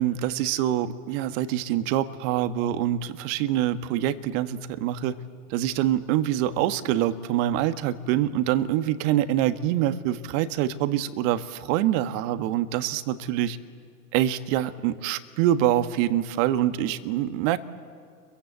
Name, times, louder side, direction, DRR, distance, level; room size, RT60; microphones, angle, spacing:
voice 1, 0.0-5.2 5.5-13.6 14.1-17.6, right 12 dB, 55° right, 10 dB, 1.6 m, -25 dB
30.0 x 23.0 x 7.9 m, 2.3 s
hypercardioid pair, 90°, 46 cm